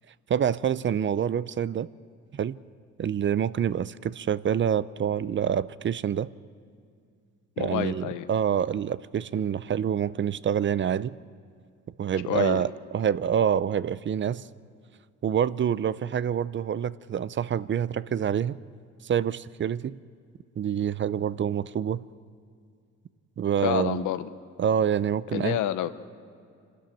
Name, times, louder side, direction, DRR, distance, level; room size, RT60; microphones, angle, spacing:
voice 1, 0.3-1.9 2.3-2.6 3.0-6.3 7.6-11.1 12.0-14.4 15.2-18.6 19.0-20.0 20.6-22.0 23.4-24.0 24.6-25.6, right 8 dB, 40° right, 18 dB, 0.5 m, -26 dB
voice 2, 7.6-8.3 12.3-12.6 23.6-24.3 25.3-25.9, left 12 dB, 90° left, 13 dB, 0.9 m, -28 dB
26.0 x 13.0 x 9.0 m, 2.3 s
cardioid pair, 90°, 30 cm